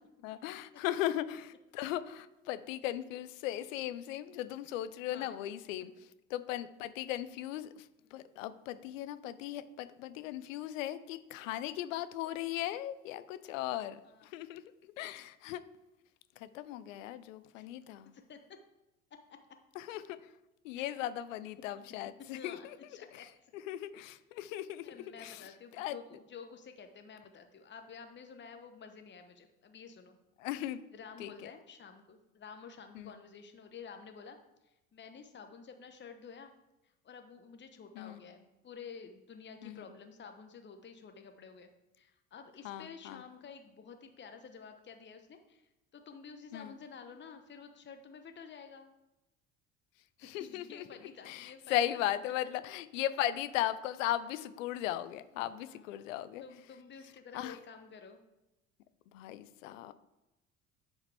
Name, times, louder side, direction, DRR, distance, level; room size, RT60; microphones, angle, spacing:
voice 1, 0.2-5.9 6.3-15.6 16.4-18.1 19.7-20.2 20.6-22.8 23.1-26.0 30.4-30.8 31.2-31.5 32.9-33.1 37.9-38.2 39.6-39.9 42.6-43.2 46.5-46.7 50.2-50.8 51.2-56.4 57.3-57.6 59.1-59.9, left 13 dB, 75° left, 14 dB, 0.6 m, -37 dB
voice 2, 22.3-23.5 24.8-30.2 30.9-34.4 34.6-36.5 37.0-48.9 50.4-51.9 55.7-56.1 56.4-58.2, left 6 dB, 25° left, 6 dB, 1.0 m, -51 dB
10.0 x 4.7 x 3.4 m, 0.95 s
hypercardioid pair, 65°, 40 cm